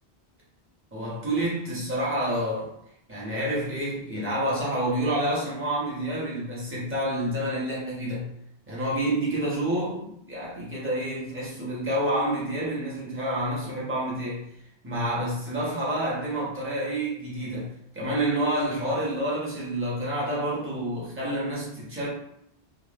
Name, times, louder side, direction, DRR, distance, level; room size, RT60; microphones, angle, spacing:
voice 1, 0.9-2.7 3.1-8.3 8.7-14.5 14.8-22.1, right 1 dB, 10° right, -7 dB, 0.9 m, -28 dB
2.5 x 2.4 x 3.3 m, 0.74 s
omnidirectional pair, 1.1 m